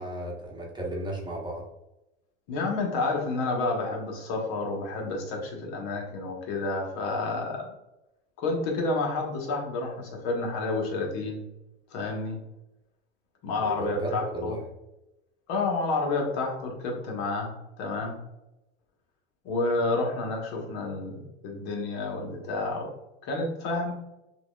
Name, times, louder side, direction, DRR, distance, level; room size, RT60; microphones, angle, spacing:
voice 1, 0.0-1.6 13.6-14.6, right 1 dB, 15° right, -2 dB, 1.0 m, -34 dB
voice 2, 2.5-7.7 8.4-11.4 11.9-12.4 13.4-14.6 15.5-18.2 19.4-22.9 23.2-23.9, left 3 dB, 60° left, 0 dB, 1.2 m, -30 dB
5.8 x 2.4 x 2.3 m, 0.94 s
hypercardioid pair, 100°, 35 cm